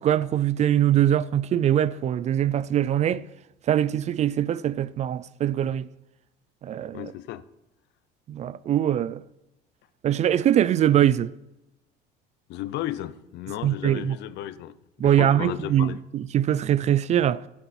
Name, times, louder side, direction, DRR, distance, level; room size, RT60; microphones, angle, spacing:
voice 1, 0.0-3.2 3.7-5.9 6.6-7.1 8.3-9.2 10.0-11.3 13.6-14.2 15.0-17.4, right 11 dB, 35° right, 0.4 m, -22 dB
voice 2, 6.9-7.4 12.5-16.0, left 13 dB, 65° left, 0.8 m, -34 dB
15.0 x 10.0 x 4.3 m
cardioid pair, 135°, 19 cm